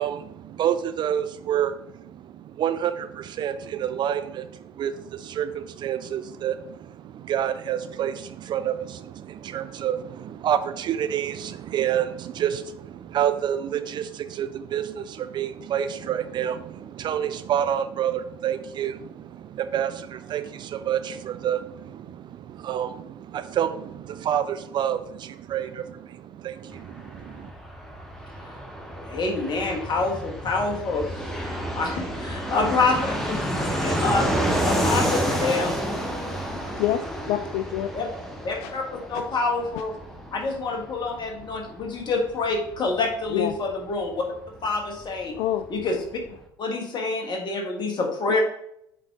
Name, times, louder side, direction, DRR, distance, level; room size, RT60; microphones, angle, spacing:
voice 1, 0.0-27.5, right 9 dB, 35° right, 11 dB, 0.4 m, -28 dB
Fixed-wing aircraft airplane, 26.7-45.1 45.4-45.5 45.6-46.4, equal, ahead, 1.1 m, -30 dB
voice 2, 29.1-33.4 33.8-34.3 34.7-35.8 37.9-38.1 38.4-39.9 40.3-44.2 44.6-45.3 45.7-46.0 46.6-48.4, left 3 dB, 35° left, 2 dB, 1.5 m, -27 dB
voice 3, 36.8-37.9 38.6-38.7 39.1-39.2 39.8-39.9 43.3-43.5 45.4-45.7, left 12 dB, 50° left, 9 dB, 0.4 m, -26 dB
7.3 x 3.8 x 3.6 m, 0.75 s
figure-of-eight pair, 65°, 13 cm